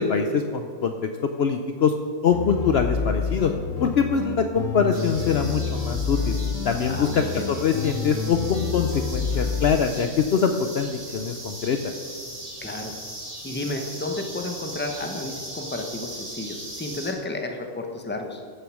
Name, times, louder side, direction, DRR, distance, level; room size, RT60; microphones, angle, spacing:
voice 1, 0.0-2.0 2.2-3.5 3.8-6.4 6.6-11.8, left 6 dB, 60° left, 6 dB, 0.8 m, -23 dB
sound 1, 2.3-9.8, left 5 dB, 85° left, 1.3 m, -28 dB
sound 2, 4.9-17.1, right 1 dB, 25° right, 1.9 m, -39 dB
voice 2, 6.9-7.5 12.6-12.9 13.4-18.4, left 2 dB, 10° left, 4 dB, 0.9 m, -32 dB
15.0 x 6.7 x 6.3 m, 2.1 s
omnidirectional pair, 1.4 m